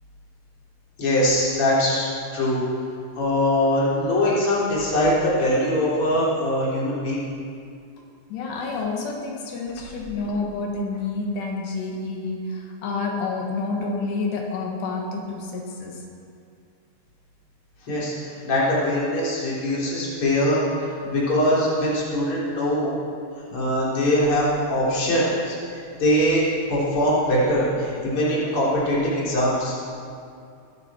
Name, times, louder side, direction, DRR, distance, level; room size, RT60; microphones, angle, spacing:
voice 1, 1.0-2.6 3.1-7.2 17.9-23.0 23.5-29.7, left 1 dB, 35° left, -7 dB, 4.3 m, -22 dB
voice 2, 8.3-16.0 18.4-18.5, left 3 dB, 80° left, 0 dB, 3.6 m, -29 dB
22.5 x 12.0 x 4.5 m, 2.4 s
omnidirectional pair, 4.8 m